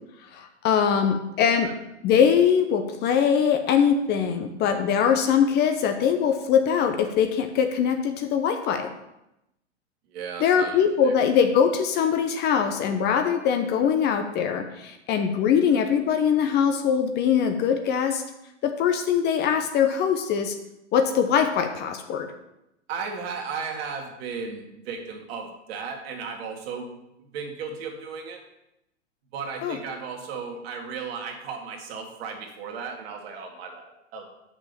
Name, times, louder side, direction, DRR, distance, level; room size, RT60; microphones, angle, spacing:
voice 1, 0.3-1.7 2.0-8.9 10.4-18.2 18.6-20.5 20.9-22.3 29.6-29.8, left 7 dB, 30° left, 6 dB, 0.8 m, -22 dB
voice 2, 10.1-11.1 22.9-28.4 29.3-34.3, right 5 dB, 55° right, 2 dB, 2.2 m, -35 dB
6.2 x 5.4 x 6.9 m, 0.87 s
hypercardioid pair, 115°, 36 cm